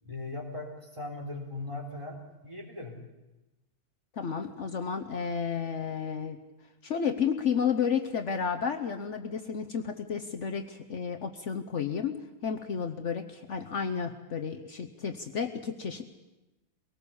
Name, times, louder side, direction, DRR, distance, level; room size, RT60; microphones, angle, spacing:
voice 1, 0.0-3.0, left 2 dB, 20° right, 0 dB, 3.9 m, -39 dB
voice 2, 4.2-6.4 6.8-16.2, left 6 dB, 60° left, 7 dB, 1.2 m, -32 dB
22.5 x 18.5 x 7.0 m, 1.0 s
omnidirectional pair, 1.5 m